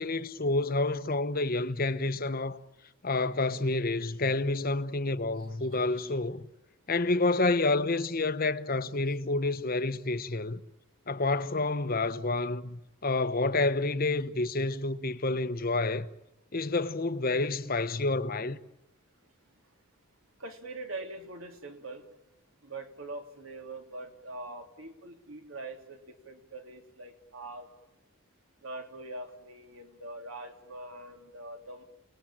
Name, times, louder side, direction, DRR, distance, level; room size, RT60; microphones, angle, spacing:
voice 1, 0.0-2.6 3.0-6.5 6.9-10.6 11.1-16.1 16.5-18.6, left 2 dB, 40° left, 1.1 m, -29 dB
voice 2, 5.7-6.2 20.4-22.1 22.6-27.7 28.6-31.8, right 2 dB, 65° right, 3.3 m, -43 dB
29.0 x 20.0 x 8.9 m
head